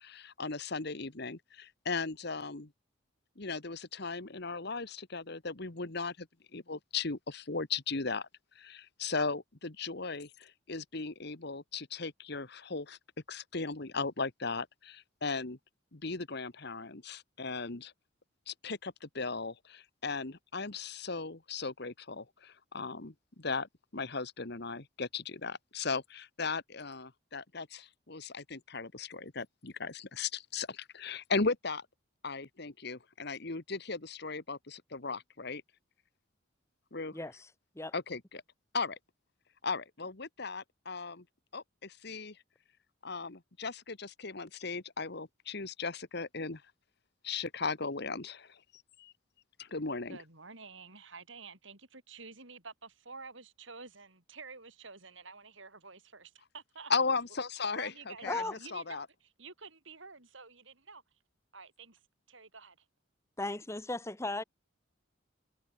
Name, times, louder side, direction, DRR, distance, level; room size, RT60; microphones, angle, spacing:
voice 1, 0.0-2.7 3.4-6.3 6.5-8.3 8.5-13.0 13.3-15.6 15.9-17.9 18.5-31.9 32.2-35.6 36.9-37.2 37.9-38.4 38.7-38.9 39.6-41.2 41.5-42.4 43.0-46.6 47.2-49.1 49.6-50.2 56.9-59.1, left 4 dB, 55° left, 1.5 m, -37 dB
voice 2, 37.1-37.5 37.8-37.9 58.3-58.5 63.4-64.4, left 2 dB, 15° left, 1.2 m, -36 dB
voice 3, 50.1-56.9 57.7-59.0 59.4-61.0 61.5-62.0 62.3-62.8, right 4 dB, 70° right, 7.6 m, -49 dB
head